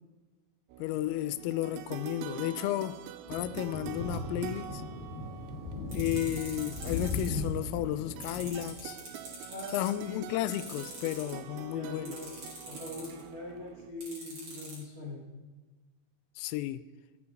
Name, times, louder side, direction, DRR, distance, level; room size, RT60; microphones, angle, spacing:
sound 1, 0.7-13.9, right 10 dB, 90° right, 2.7 m, -46 dB
voice 1, 0.8-3.0 3.3-4.8 5.9-9.0 9.7-12.1 16.4-16.8, left 13 dB, 85° left, 14 dB, 3.1 m, -33 dB
sound 2, 3.3-8.7, left 3 dB, 65° left, 2.7 m, -38 dB
sound 3, 5.9-7.4 8.2-9.9 10.5-11.3 12.1-13.2 14.0-14.8, right 2 dB, 25° right, 3.6 m, -44 dB
voice 2, 9.5-10.2 11.7-12.3 12.7-15.2, left 1 dB, 60° right, -4 dB, 0.9 m, -42 dB
15.0 x 13.5 x 3.9 m, 1.2 s
omnidirectional pair, 6.0 m